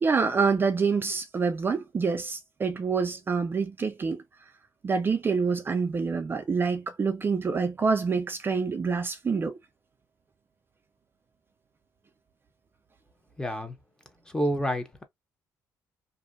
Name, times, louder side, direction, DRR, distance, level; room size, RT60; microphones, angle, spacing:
voice 1, 0.0-4.2 4.8-9.5, right 5 dB, 30° right, 0.3 m, -26 dB
voice 2, 13.4-13.8 14.3-15.1, equal, 10° left, 0.6 m, -29 dB
2.5 x 2.1 x 2.5 m
cardioid pair, 105°, 8 cm